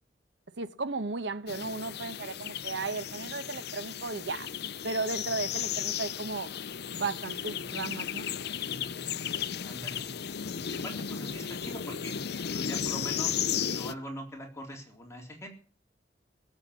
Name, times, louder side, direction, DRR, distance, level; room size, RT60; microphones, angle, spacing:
voice 1, 0.6-4.5 4.8-6.5 6.9-8.3, right 3 dB, 80° right, 1.0 m, -35 dB
sound 1, 1.5-13.9, left 8 dB, 65° left, 0.6 m, -35 dB
voice 2, 9.6-10.1 10.7-12.2 12.5-15.5, equal, 15° left, 3.7 m, -42 dB
18.5 x 8.1 x 8.3 m
head